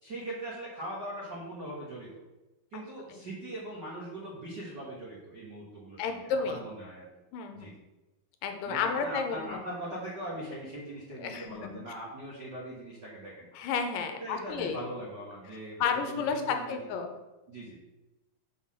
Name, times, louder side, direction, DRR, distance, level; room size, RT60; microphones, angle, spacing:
voice 1, 0.0-2.1 2.7-7.1 7.5-7.8 8.6-13.5 14.2-16.9 17.5-17.8, right 1 dB, 60° right, -6 dB, 1.1 m, -40 dB
voice 2, 6.0-6.6 7.3-7.7 8.4-9.6 11.2-11.8 13.5-14.8 15.8-17.1, left 5 dB, 80° left, 6 dB, 2.3 m, -32 dB
6.2 x 3.9 x 6.2 m, 1.1 s
omnidirectional pair, 3.9 m